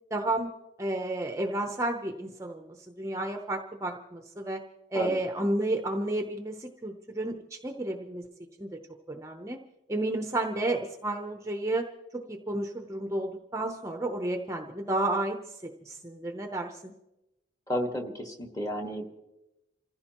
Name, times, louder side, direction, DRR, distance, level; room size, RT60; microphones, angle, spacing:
voice 1, 0.1-0.5 0.8-2.7 3.0-4.6 4.9-8.2 8.6-8.7 9.1-9.6 9.9-11.8 12.3-15.4 15.9-16.9, right 1 dB, 15° right, 4 dB, 0.7 m, -31 dB
voice 2, 17.7-19.2, equal, 15° left, 3 dB, 1.6 m, -32 dB
28.0 x 15.5 x 3.0 m, 0.96 s
head